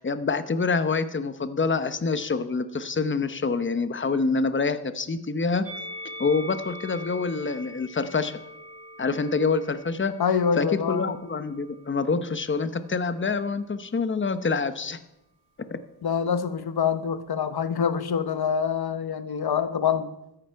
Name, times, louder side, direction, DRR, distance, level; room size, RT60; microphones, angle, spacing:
voice 1, 0.0-5.6 6.2-8.4 9.0-10.1 10.6-15.0 15.7-15.8, left 4 dB, 30° left, 0.9 m, -26 dB
Musical instrument, 5.6-12.0 12.9-13.9, equal, 55° right, 5.1 m, -43 dB
voice 2, 10.2-11.1 16.0-20.1, left 7 dB, 65° left, 1.0 m, -25 dB
13.5 x 10.0 x 4.7 m
cardioid pair, 70°, 41 cm